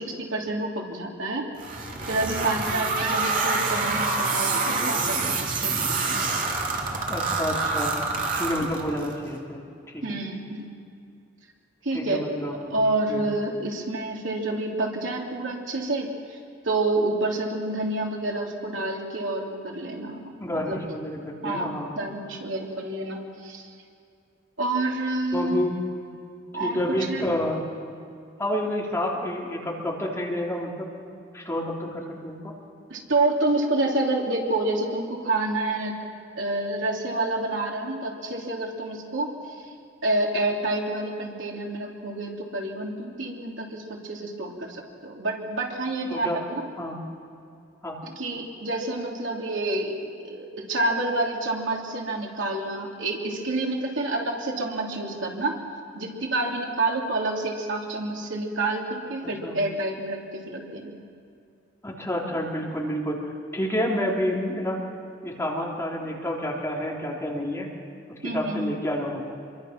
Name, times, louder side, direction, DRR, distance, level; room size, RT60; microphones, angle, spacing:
voice 1, 0.0-1.5 2.1-6.4 10.0-10.7 11.8-12.2 12.7-16.4 16.6-20.3 20.6-20.8 21.4-23.7 24.6-25.6 26.5-27.3 32.9-36.0 36.3-39.5 40.0-46.6 48.2-55.6 55.9-61.0 68.2-68.8, right 2 dB, 75° right, -1 dB, 3.4 m, -28 dB
sound 1, 1.6-9.1, right 3 dB, 45° right, 2.8 m, -26 dB
voice 2, 7.1-7.9 8.3-9.6 9.9-10.0 11.9-12.8 13.1-13.2 20.4-21.9 25.3-25.7 26.6-27.6 28.4-30.9 31.3-32.5 46.1-46.4 46.8-47.0 47.8-48.0 59.4-59.6 61.8-63.2 63.5-64.8 65.2-67.7 68.2-69.2, equal, 15° left, -3 dB, 3.5 m, -29 dB
27.5 x 23.5 x 6.1 m, 2.5 s
head